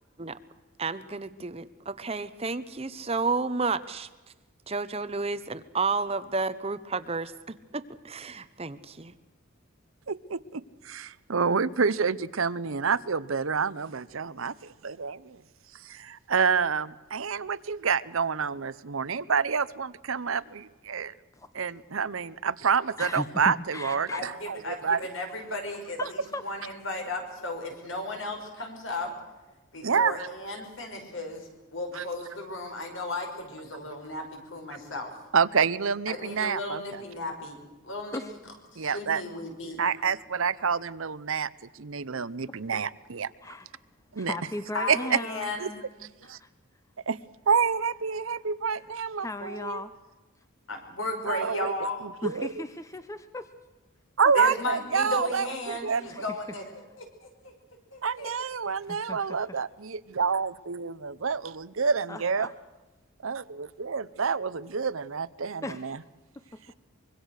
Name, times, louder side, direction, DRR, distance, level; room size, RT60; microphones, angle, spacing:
voice 1, 0.8-4.1 4.7-9.2, right 4 dB, 30° right, 14 dB, 0.8 m, -31 dB
voice 2, 10.1-15.4 15.8-21.1 21.5-25.1 29.8-30.3 31.9-32.0 35.3-36.8 38.8-39.2 39.8-41.5 41.7-43.3 44.1-44.3 44.9-45.2 45.6-45.7 46.3-46.4 47.1-47.2 47.5-49.8 51.2-51.7 52.2-52.5 54.2-56.1 58.0-62.5 63.2-66.0, right 6 dB, 75° right, 17 dB, 0.8 m, -28 dB
voice 3, 23.0-24.2 26.0-26.4 28.6-28.7 38.1-38.3 42.5-42.6 43.4-43.7 44.2-45.5 46.2-46.5 49.2-49.9 52.2-53.5 56.1-56.2 58.8-59.6 60.2-60.3 62.1-62.5 65.6-66.0 66.5-66.6, left 2 dB, 15° left, 10 dB, 0.8 m, -37 dB
voice 4, 24.1-29.1 29.7-35.1 36.1-37.6 37.8-38.2 38.7-39.8 44.7-45.7 50.7-52.1 54.3-56.7 57.0-57.5 57.9-58.3, left 2 dB, 65° left, 4 dB, 5.5 m, -35 dB
25.0 x 23.0 x 6.5 m, 1.2 s
head